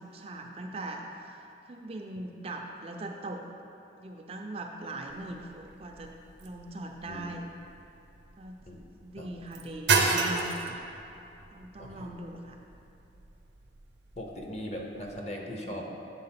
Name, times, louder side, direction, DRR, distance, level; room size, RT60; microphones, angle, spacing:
voice 1, 0.0-3.4 4.0-6.1 6.4-7.4 8.4-8.6 9.0-10.8 11.5-12.6, right 2 dB, 30° right, 2 dB, 0.4 m, -40 dB
sound 1, 5.1-15.2, right 4 dB, 70° right, 0.7 m, -34 dB
voice 2, 11.8-12.1 14.2-15.9, equal, 35° left, 0 dB, 0.7 m, -39 dB
7.6 x 3.9 x 5.7 m, 2.8 s
head